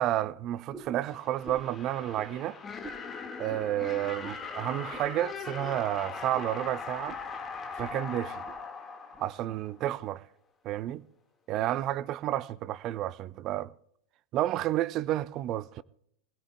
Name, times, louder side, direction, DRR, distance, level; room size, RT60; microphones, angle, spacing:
voice 1, 0.0-2.6 3.4-7.2 7.7-8.4 9.2-10.2 10.6-11.0 11.5-13.7 14.3-15.8, right 13 dB, 35° right, 0.4 m, -31 dB
sound 1, 0.7-1.0 1.4-1.7 2.1-2.3 2.8-3.0 3.5-3.7 4.2-4.4 4.9-5.1 5.6-5.8 6.3-6.5 7.1-7.2 7.8-7.9 8.2-8.6 9.1-9.3 9.9-10.0, right 2 dB, 10° right, 1.8 m, -46 dB
sound 2, 1.0-9.9, left 5 dB, 20° left, 1.7 m, -40 dB
24.0 x 17.0 x 2.2 m
figure-of-eight pair, 90°, 0 cm